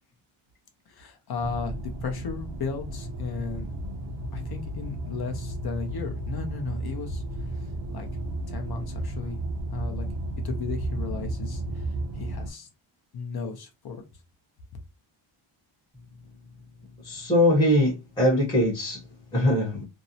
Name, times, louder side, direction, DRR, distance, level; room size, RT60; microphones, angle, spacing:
voice 1, 0.9-3.7 4.3-7.2 7.9-8.1 8.5-9.4 9.7-10.1 10.4-11.8 12.1-12.7 13.1-14.0, left 5 dB, 50° left, 0.6 m, -35 dB
sound 1, 1.4-12.5, right 1 dB, 60° right, 0.6 m, -33 dB
voice 2, 17.0-19.0 19.3-19.8, left 1 dB, 10° left, 0.8 m, -22 dB
2.6 x 2.0 x 2.6 m
wide cardioid pair, 145°, 49 cm